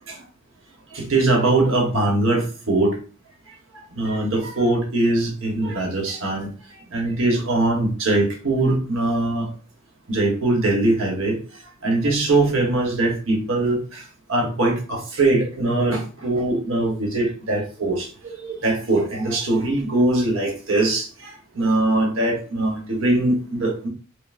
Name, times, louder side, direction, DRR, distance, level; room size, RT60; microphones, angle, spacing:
voice 1, 0.9-3.0 3.9-6.5 6.9-9.5 10.1-11.4 11.8-14.0 14.3-23.9, right 2 dB, 65° right, 1 dB, 1.1 m, -21 dB
5.2 x 2.0 x 2.5 m, 0.37 s
head